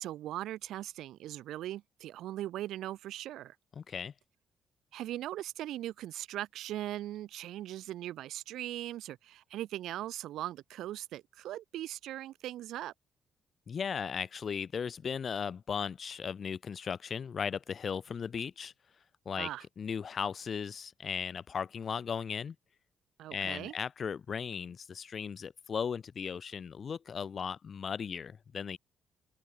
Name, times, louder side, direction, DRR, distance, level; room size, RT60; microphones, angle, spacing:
voice 1, 0.0-3.5 4.9-12.9 19.4-19.6 23.2-23.7, right 13 dB, 85° right, 2.9 m, -39 dB
voice 2, 3.8-4.1 13.7-18.7 19.2-19.5 19.8-22.5 23.3-28.8, left 6 dB, 40° left, 4.4 m, -36 dB
cardioid pair, 135°, 0 cm